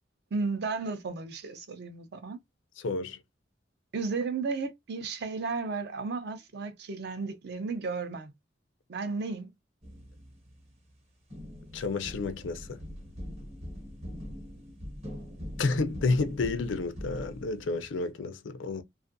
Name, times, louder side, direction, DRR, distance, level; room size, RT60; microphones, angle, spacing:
voice 1, 0.3-2.4 3.9-8.3 8.9-9.5, right 4 dB, 60° right, 0.5 m, -34 dB
voice 2, 2.8-3.2 11.7-12.8 15.6-18.8, left 3 dB, 85° left, 0.5 m, -30 dB
sound 1, 9.8-10.9 11.3-18.1, equal, 35° right, 0.9 m, -42 dB
2.5 x 2.4 x 2.6 m
head